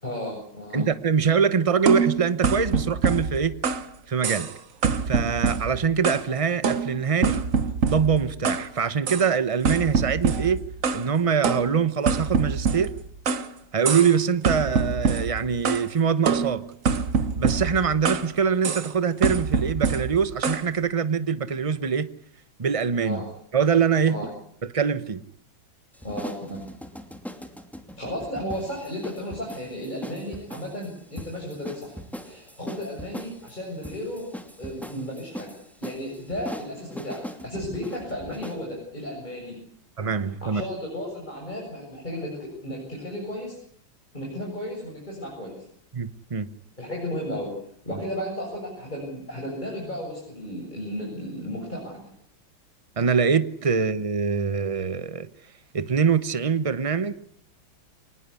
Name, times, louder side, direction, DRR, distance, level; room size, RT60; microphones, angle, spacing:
voice 1, 0.0-0.9 23.0-23.3 24.0-24.3 26.0-26.6 28.0-32.0 32.2-34.3 34.6-35.5 35.8-39.6 40.4-43.6 44.1-45.5 46.8-47.5 47.9-52.0, equal, 20° left, -2 dB, 7.3 m, -34 dB
voice 2, 0.7-3.5 4.1-4.5 5.1-7.4 7.9-10.6 10.9-12.9 13.7-16.6 17.4-22.1 22.6-23.2 23.5-24.2 24.7-25.2 40.0-40.6 45.9-46.5 53.0-55.3 55.7-57.1, right 6 dB, 30° right, 13 dB, 0.6 m, -23 dB
sound 1, 1.9-3.9 4.2-4.6 4.8-6.3 6.6-8.7 9.1-9.3 9.6-11.1 11.4-13.5 13.8-14.2 14.4-15.9 16.3-18.3 18.6-18.9 19.2-20.7, right 5 dB, 45° right, 1.3 m, -25 dB
sound 2, 25.9-38.7, equal, ahead, 2.5 m, -40 dB
26.0 x 19.5 x 8.4 m, 0.68 s
omnidirectional pair, 2.2 m